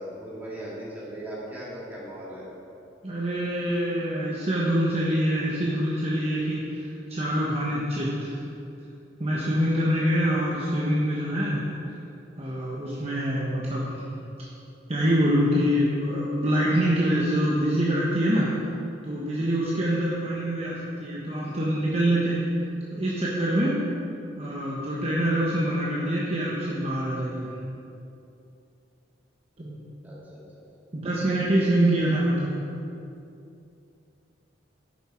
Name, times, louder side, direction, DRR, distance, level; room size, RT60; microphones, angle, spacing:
voice 1, 0.0-2.5 30.0-30.4, right 1 dB, 10° right, -8 dB, 2.6 m, -38 dB
voice 2, 3.0-8.4 9.2-11.6 12.4-13.8 14.1-14.2 14.9-18.5 19.0-22.4 22.9-23.8 24.4-27.5 29.6-29.8 30.9-32.5, equal, 35° right, -6 dB, 1.1 m, -25 dB
11.0 x 7.3 x 4.5 m, 2.7 s
head